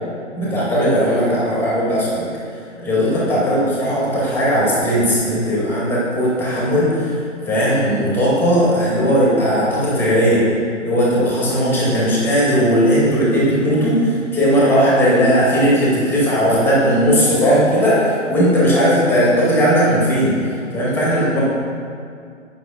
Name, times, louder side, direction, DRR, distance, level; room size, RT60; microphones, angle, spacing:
voice 1, 0.3-2.3 2.8-10.5 10.8-21.4, equal, 5° left, -7 dB, 2.0 m, -17 dB
9.1 x 6.1 x 5.0 m, 2.3 s
figure-of-eight pair, 130°, 38 cm